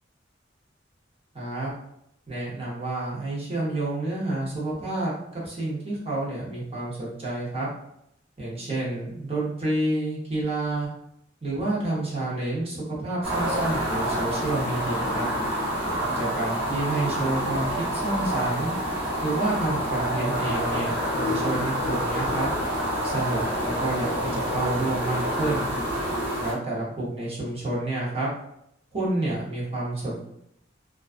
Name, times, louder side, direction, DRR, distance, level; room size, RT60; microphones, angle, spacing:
voice 1, 1.3-1.7 2.3-7.7 8.4-10.9 11.4-15.3 16.2-18.7 19.2-22.5 23.0-25.7 26.4-28.3 28.9-30.2, right 2 dB, 30° right, -6 dB, 0.8 m, -29 dB
sound 1, 13.2-26.5, equal, 10° right, 1.0 m, -27 dB
2.3 x 2.3 x 2.4 m, 0.77 s
head